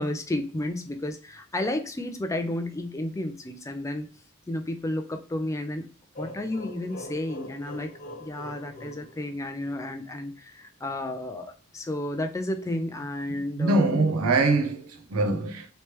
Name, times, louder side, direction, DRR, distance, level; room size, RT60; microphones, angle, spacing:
voice 1, 0.0-4.1 4.5-5.9 6.2-7.9 8.2-13.9, left 1 dB, 15° left, 0.3 m, -32 dB
sound 1, 6.1-9.9, equal, 35° left, 1.1 m, -42 dB
voice 2, 13.3-15.7, right 2 dB, 75° right, 0.6 m, -24 dB
3.2 x 3.1 x 2.9 m
head